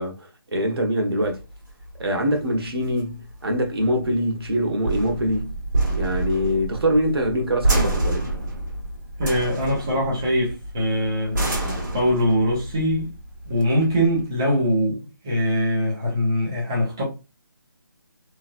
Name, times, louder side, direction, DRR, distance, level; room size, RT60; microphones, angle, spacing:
voice 1, 0.0-1.4 2.0-5.5 5.9-8.3, equal, 90° right, 1.1 m, -24 dB
sound 1, 1.2-14.3, right 2 dB, 55° right, 1.7 m, -28 dB
voice 2, 9.2-11.4 11.9-13.1 13.5-17.0, equal, 10° right, 0.4 m, -22 dB
3.1 x 2.4 x 2.5 m
hypercardioid pair, 175°, 12 cm